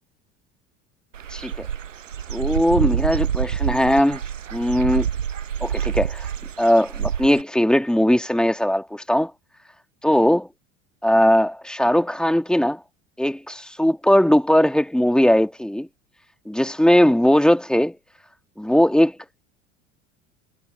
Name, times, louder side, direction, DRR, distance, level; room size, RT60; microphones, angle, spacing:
Dog / Bird, 1.1-7.4, right 8 dB, 90° right, 0.7 m, -27 dB
voice 1, 1.3-1.7 2.3-4.2 4.5-5.1 5.6-6.3 6.6-9.3 10.0-10.5 11.0-12.8 13.2-15.9 16.5-18.0 18.6-19.1, equal, ahead, 2.1 m, -19 dB
figure-of-eight pair, 70°, 37 cm